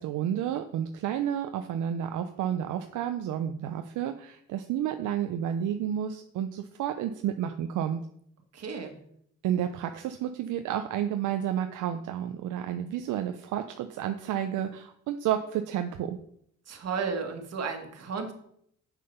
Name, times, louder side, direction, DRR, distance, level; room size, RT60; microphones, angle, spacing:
voice 1, 0.0-8.0 9.4-16.2, right 10 dB, 80° right, 7 dB, 0.6 m, -31 dB
voice 2, 8.5-9.0 16.7-18.3, right 5 dB, 55° right, 5 dB, 1.7 m, -33 dB
7.6 x 6.6 x 5.4 m, 0.70 s
cardioid pair, 90°, 30 cm